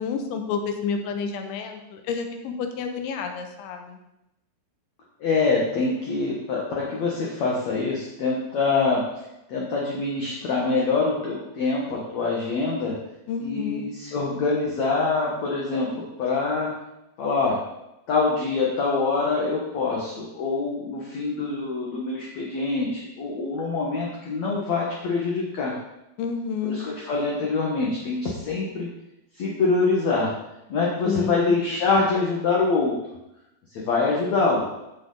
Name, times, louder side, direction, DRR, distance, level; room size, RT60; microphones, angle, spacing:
voice 1, 0.0-4.0 13.3-13.8 26.2-26.8 31.0-31.5, left 6 dB, 85° left, 5 dB, 3.4 m, -29 dB
voice 2, 5.2-9.0 9.5-12.9 13.4-16.7 17.2-17.6 18.1-25.7 26.6-28.9 29.4-30.3 30.7-32.9 33.7-34.6, left 3 dB, 65° left, -3 dB, 1.7 m, -25 dB
14.5 x 6.3 x 4.0 m, 0.89 s
omnidirectional pair, 5.2 m